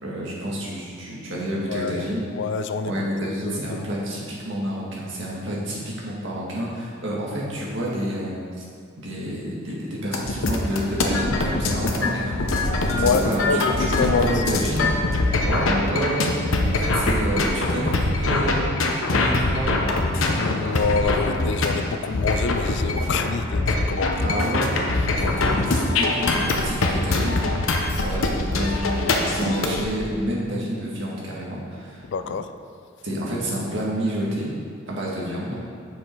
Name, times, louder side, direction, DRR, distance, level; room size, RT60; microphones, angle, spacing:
voice 1, 0.0-2.2 2.8-8.4 9.0-12.3 12.8-13.6 13.9-14.9 15.4-16.3 16.7-18.8 19.1-19.8 24.2-24.7 25.1-27.5 28.0-32.1 33.0-34.5 34.9-35.7, equal, 65° right, -4 dB, 1.8 m, -28 dB
voice 2, 1.7-2.0 2.3-3.8 12.8-14.6 20.3-24.3 24.9-25.4 28.0-28.1 32.0-32.5, left 5 dB, 60° left, 10 dB, 0.4 m, -27 dB
sound 1, 10.1-29.8, left 2 dB, 85° left, 0.8 m, -23 dB
7.5 x 6.2 x 4.6 m, 2.2 s
head